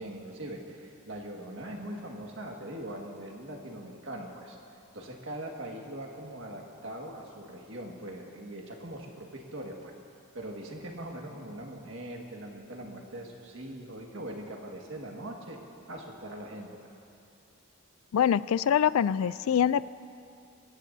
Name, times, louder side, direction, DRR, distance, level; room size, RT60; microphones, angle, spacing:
voice 1, 0.0-4.6 4.9-9.9 10.3-15.6 15.9-16.8, right 1 dB, 60° right, 0 dB, 1.8 m, -41 dB
voice 2, 18.1-19.9, left 8 dB, 80° left, 18 dB, 0.3 m, -24 dB
23.0 x 17.0 x 2.7 m, 2.6 s
head